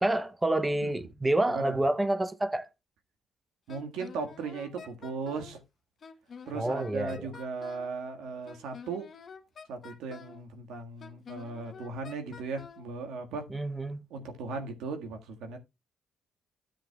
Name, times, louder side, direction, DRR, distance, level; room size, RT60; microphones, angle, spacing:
voice 1, 0.0-2.7 6.5-7.3 13.5-14.0, right 1 dB, 15° right, 0.6 m, -28 dB
Wind instrument woodwind instrument, 3.7-5.6 6.0-7.9 8.5-10.4 11.0-12.9, left 6 dB, 50° left, 1.1 m, -48 dB
voice 2, 3.7-5.6 6.5-9.1 9.7-13.4 14.1-15.6, right 4 dB, 90° right, 1.6 m, -37 dB
13.0 x 7.4 x 2.3 m
cardioid pair, 90°, 0 cm